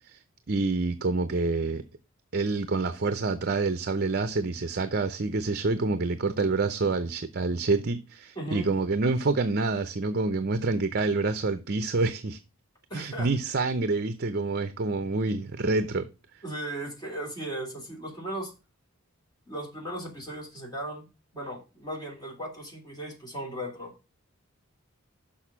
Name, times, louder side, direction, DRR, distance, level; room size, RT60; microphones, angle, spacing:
voice 1, 0.5-1.8 2.3-12.4 12.9-16.1, right 3 dB, 45° right, 0.6 m, -27 dB
voice 2, 8.4-8.7 12.9-13.3 16.4-18.5 19.5-21.1 21.3-23.9, right 1 dB, 20° left, 2.9 m, -36 dB
6.4 x 5.8 x 6.0 m
head